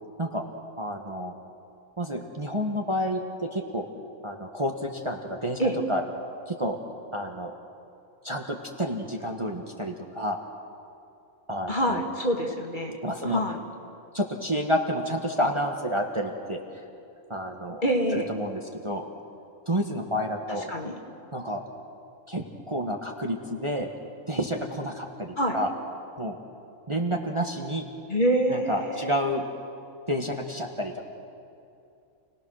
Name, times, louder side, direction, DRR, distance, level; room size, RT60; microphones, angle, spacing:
voice 1, 0.8-1.3 2.0-3.9 4.2-5.6 5.9-6.0 6.5-6.8 7.1-7.6 8.2-10.4 11.5-12.0 13.0-13.4 14.1-16.6 17.3-17.8 18.1-19.1 19.7-20.7 21.3-21.6 22.3-23.9 24.3-25.7 26.2-26.4 26.9-27.9 28.5-29.4 30.1-31.1, equal, 25° right, 1 dB, 1.4 m, -29 dB
voice 2, 11.7-13.0 13.2-13.6 17.8-18.3 20.7-21.0 25.4-25.6 28.1-29.2, right 1 dB, 35° left, 2 dB, 2.1 m, -26 dB
29.5 x 19.0 x 6.4 m, 2.7 s
omnidirectional pair, 1.4 m